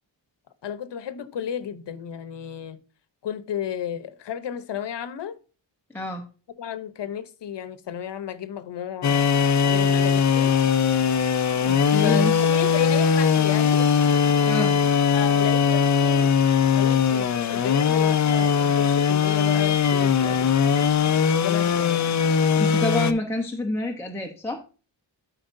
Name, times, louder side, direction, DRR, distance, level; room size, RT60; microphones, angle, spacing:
voice 1, 0.6-2.8 3.2-5.4 6.6-9.3 9.6-10.5 12.0-13.9 15.1-16.4 16.7-20.5 21.4-22.0, left 9 dB, 65° left, 0.9 m, -33 dB
voice 2, 5.9-6.2 11.6-12.4 14.4-14.8 22.5-24.6, left 2 dB, 5° left, 0.8 m, -28 dB
sound 1, 9.0-23.1, left 7 dB, 40° left, 0.5 m, -20 dB
13.0 x 4.6 x 2.6 m
wide cardioid pair, 160°, 45 cm